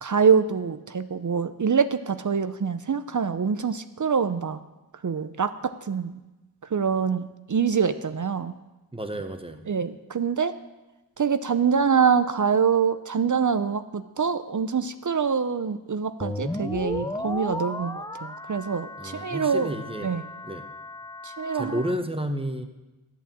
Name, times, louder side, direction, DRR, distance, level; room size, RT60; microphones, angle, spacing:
voice 1, 0.0-4.6 5.0-6.2 6.7-8.5 9.7-10.5 11.2-19.7 20.0-20.2 21.2-21.8, right 6 dB, 50° right, 11 dB, 0.6 m, -25 dB
voice 2, 8.9-9.6 19.0-20.2 20.4-20.7 21.5-22.7, equal, 15° right, 7 dB, 1.2 m, -31 dB
sound 1, 16.2-21.9, left 2 dB, 10° left, 0.7 m, -35 dB
11.0 x 8.4 x 7.4 m, 1.1 s
wide cardioid pair, 60°, 40 cm